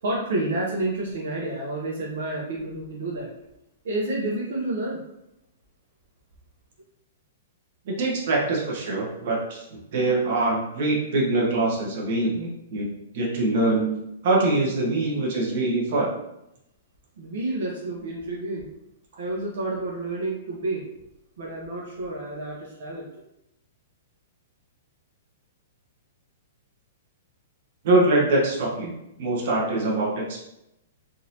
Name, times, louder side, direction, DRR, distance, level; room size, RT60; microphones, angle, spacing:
voice 1, 0.0-3.3 3.8-5.0 17.2-18.6 19.2-20.8 21.4-23.1, right 2 dB, 65° right, -3 dB, 0.8 m, -29 dB
voice 2, 7.8-9.6 9.9-12.9 13.1-13.9 14.2-16.1 27.8-30.4, right 2 dB, 45° right, -3 dB, 1.0 m, -23 dB
3.8 x 2.6 x 2.8 m, 0.85 s
hypercardioid pair, 170°, 0 cm